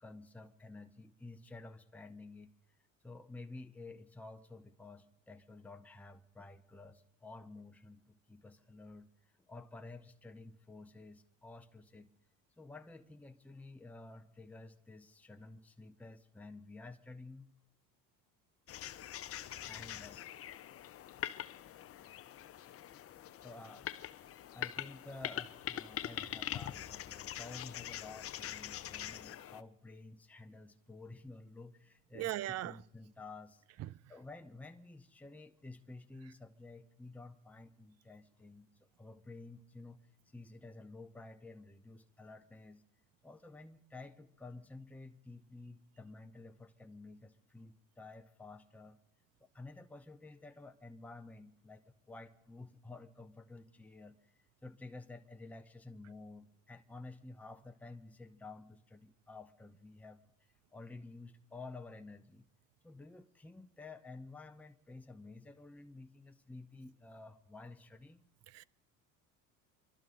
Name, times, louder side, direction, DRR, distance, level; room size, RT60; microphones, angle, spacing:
voice 1, 0.0-2.5 3.0-9.1 9.5-12.1 12.6-17.5 19.6-20.2 22.0-22.1 23.4-23.9 24.5-32.4 32.6-33.6 34.1-38.7 39.0-42.8 43.2-49.0 49.4-54.3 54.6-60.2 60.7-62.5 62.8-68.2, left 3 dB, 5° left, 0.9 m, -52 dB
sound 1, 18.7-29.6, left 11 dB, 35° left, 0.6 m, -44 dB
voice 2, 32.1-32.8 33.8-34.0 68.5-68.6, right 14 dB, 45° right, 0.4 m, -39 dB
26.0 x 12.0 x 3.9 m
supercardioid pair, 85°, 38 cm